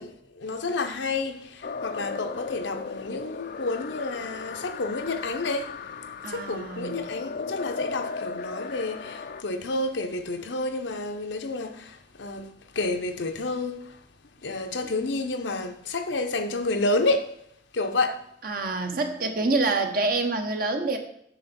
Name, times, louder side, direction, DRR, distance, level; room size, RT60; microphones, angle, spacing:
voice 1, 0.0-14.1 14.4-17.4 17.7-18.3, left 2 dB, 85° left, 0.9 m, -30 dB
sound 1, 1.6-9.4, left 5 dB, 55° left, 0.5 m, -36 dB
voice 2, 6.2-7.0 18.4-21.0, right 3 dB, 55° right, 1.1 m, -26 dB
8.3 x 6.3 x 4.3 m
head